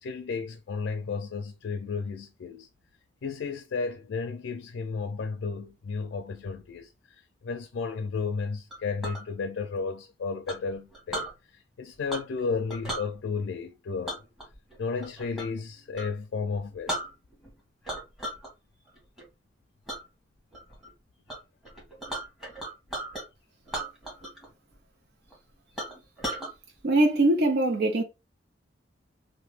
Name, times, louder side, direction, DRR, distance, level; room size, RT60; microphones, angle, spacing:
voice 1, 0.0-2.7 3.2-14.2 14.8-17.0, left 4 dB, 80° left, 0.4 m, -33 dB
Chink clink, 8.7-9.2 10.5-11.3 12.1-12.4 12.7-13.1 14.1-15.6 15.9-16.1 16.5-16.6 16.9-17.5 17.8-18.5 18.9-19.2 19.9-20.0 20.5-20.9 21.3-21.4 21.6-23.2 23.7-24.5 24.7-24.8 25.3-25.4 25.8-26.5, right 1 dB, ahead, 1.2 m, -36 dB
voice 2, 26.8-28.0, right 1 dB, 60° right, 0.6 m, -22 dB
2.8 x 2.2 x 3.2 m
head